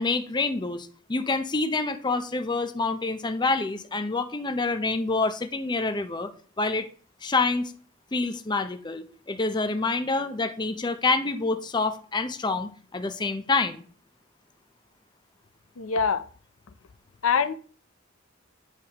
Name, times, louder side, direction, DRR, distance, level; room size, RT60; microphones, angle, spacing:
voice 1, 0.0-6.3 6.6-6.9 7.2-7.7 8.1-13.8, left 3 dB, 20° left, 0.5 m, -27 dB
voice 2, 15.8-16.2 17.2-17.5, left 6 dB, 90° left, 0.5 m, -23 dB
9.0 x 4.8 x 2.9 m
head